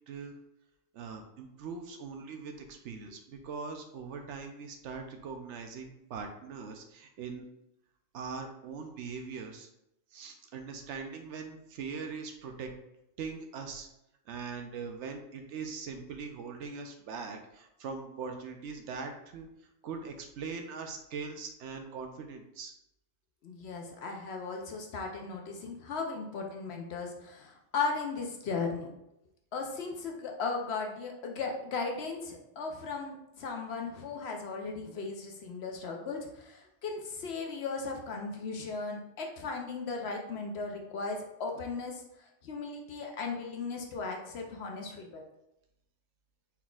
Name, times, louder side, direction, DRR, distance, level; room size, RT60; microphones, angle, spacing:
voice 1, 0.9-7.4 8.1-9.7 10.1-12.7 13.2-13.9 14.3-19.5 19.8-22.7, right 5 dB, 70° right, 5 dB, 0.8 m, -41 dB
voice 2, 23.4-28.9 29.5-42.0 42.4-45.2, left 4 dB, 60° left, 2 dB, 0.8 m, -37 dB
4.3 x 4.0 x 2.3 m, 0.85 s
omnidirectional pair, 1.3 m